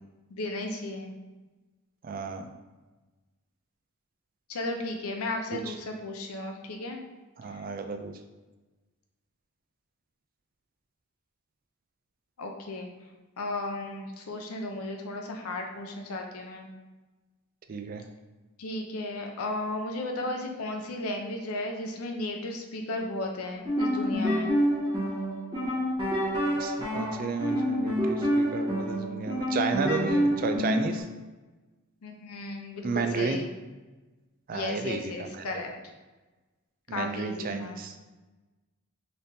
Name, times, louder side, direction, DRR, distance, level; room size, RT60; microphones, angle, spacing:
voice 1, 0.3-1.1 4.5-7.0 7.5-7.6 12.4-12.9 13.4-16.7 18.6-24.5 32.0-33.5 34.5-35.7 36.9-37.8, left 2 dB, 80° left, 3 dB, 0.6 m, -35 dB
voice 2, 2.0-2.5 5.5-5.7 7.4-8.1 17.7-18.0 26.5-31.1 32.8-33.4 34.5-35.4 36.9-37.9, right 4 dB, 40° right, 7 dB, 0.3 m, -32 dB
sound 1, 23.5-31.0, equal, 20° right, 0.9 m, -27 dB
4.0 x 3.4 x 2.7 m, 1.2 s
head